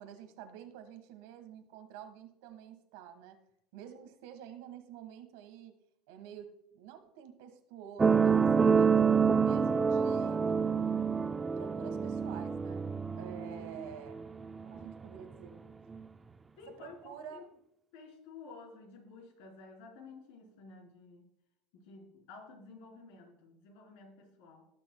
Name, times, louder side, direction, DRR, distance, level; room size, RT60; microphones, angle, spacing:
voice 1, 0.0-3.4 3.7-5.7 6.1-9.1 9.4-10.4 11.6-14.2 14.6-15.6 16.7-17.5, right 9 dB, 80° right, 8 dB, 1.5 m, -49 dB
sound 1, 8.0-15.0 15.9-16.0, right 6 dB, 20° right, 0.4 m, -28 dB
voice 2, 16.6-17.5 17.9-21.3 21.7-24.7, left 4 dB, 80° left, 0 dB, 3.6 m, -52 dB
18.5 x 6.1 x 2.2 m, 0.78 s
supercardioid pair, 125°, 0 cm